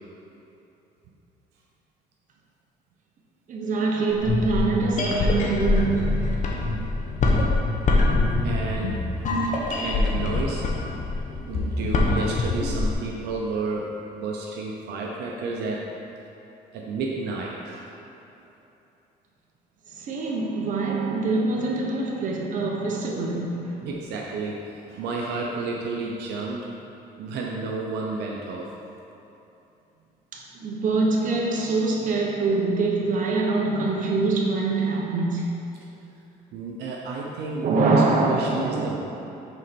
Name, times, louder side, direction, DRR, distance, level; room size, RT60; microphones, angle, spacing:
voice 1, 3.5-6.4 19.9-23.9 30.3-35.5 37.6-39.0, right 3 dB, 50° right, 1.1 m, -24 dB
sound 1, 4.1-12.9, left 2 dB, 45° left, 1.0 m, -24 dB
voice 2, 8.4-9.3 9.8-10.7 11.5-15.9 16.7-17.9 23.8-26.7 27.2-28.7 36.5-39.0, right 3 dB, 80° right, 0.8 m, -31 dB
6.3 x 4.3 x 5.2 m
cardioid pair, 110°, 17 cm